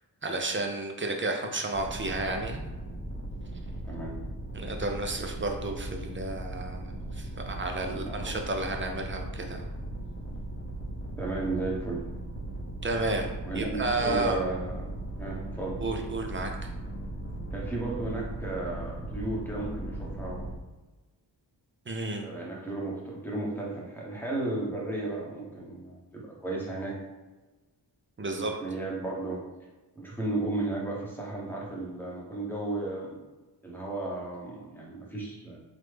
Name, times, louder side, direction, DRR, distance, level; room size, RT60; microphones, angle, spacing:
voice 1, 0.2-2.6 4.5-9.7 12.8-14.4 15.8-16.5 21.9-22.3 28.2-28.5, right 2 dB, 30° right, 3 dB, 0.4 m, -32 dB
sound 1, 1.7-20.5, right 1 dB, 30° left, 0.7 m, -38 dB
voice 2, 7.9-8.4 11.2-12.0 13.4-15.8 17.5-20.5 22.2-27.0 28.3-29.4 29.9-33.2 33.6-35.6, right 2 dB, 5° left, -4 dB, 0.9 m, -34 dB
3.1 x 2.1 x 3.2 m, 1.2 s
wide cardioid pair, 55°, 44 cm